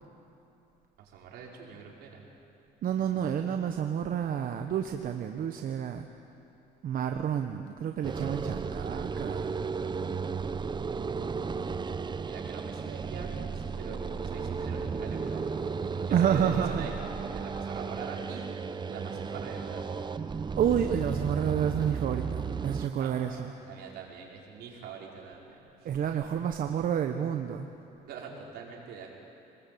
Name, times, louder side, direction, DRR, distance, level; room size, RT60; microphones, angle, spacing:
voice 1, 1.0-2.2 12.2-13.5 13.8-18.5 18.8-19.9 22.9-25.6 28.0-29.2, right 6 dB, 75° right, -2 dB, 5.3 m, -44 dB
voice 2, 2.8-6.1 6.8-9.5 16.1-16.9 20.6-23.5 25.8-27.7, right 9 dB, 55° right, 5 dB, 1.2 m, -29 dB
sound 1, 8.0-22.9, right 5 dB, 25° right, 0.8 m, -34 dB
26.5 x 21.0 x 8.7 m, 2.8 s
cardioid pair, 110°, 17 cm